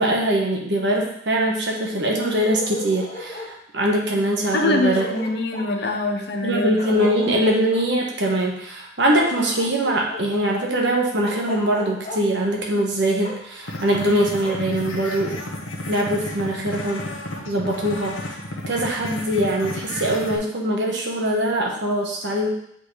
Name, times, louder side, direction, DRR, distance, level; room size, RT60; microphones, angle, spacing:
voice 1, 0.0-5.1 6.4-15.4 15.9-17.1 17.5-18.2 18.7-22.5, right 1 dB, 60° right, -1 dB, 1.3 m, -22 dB
Bark, 2.2-3.5 4.6-4.7 4.9-5.7 6.8-7.8 9.1-10.2 11.2-12.2 13.2-13.4 14.4-14.6, left 1 dB, 35° left, 1.3 m, -34 dB
voice 2, 4.5-7.1, left 2 dB, 55° left, 3 dB, 0.8 m, -24 dB
sound 1, 13.6-20.4, left 1 dB, 80° left, 1.1 m, -32 dB
8.3 x 3.9 x 3.3 m, 0.72 s
head